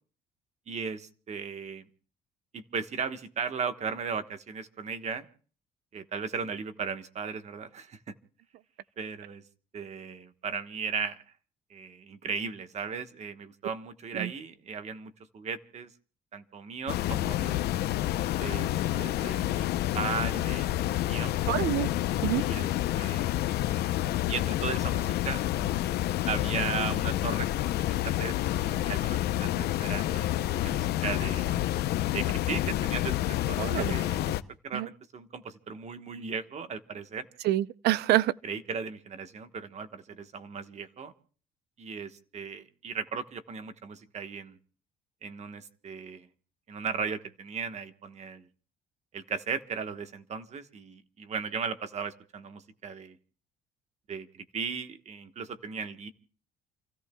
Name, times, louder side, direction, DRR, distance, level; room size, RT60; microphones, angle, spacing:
voice 1, 0.7-1.9 2.5-5.3 5.9-8.0 9.0-9.4 9.7-11.2 11.7-15.9 16.3-17.6 18.4-19.7 19.9-21.3 22.4-22.7 22.9-23.2 24.3-25.5 26.3-28.3 28.6-31.6 32.1-34.2 34.6-37.3 38.4-41.1 41.8-44.6 45.2-46.3 46.7-48.5 49.1-53.2 54.1-56.1, right 6 dB, 40° right, 1.3 m, -36 dB
sound 1, 16.9-34.4, left 14 dB, 75° left, 0.7 m, -29 dB
voice 2, 21.5-21.9 22.2-22.4 33.6-33.9 34.7-34.9 37.4-38.3, right 15 dB, 75° right, 0.6 m, -26 dB
29.5 x 16.0 x 2.3 m
cardioid pair, 110°, 17 cm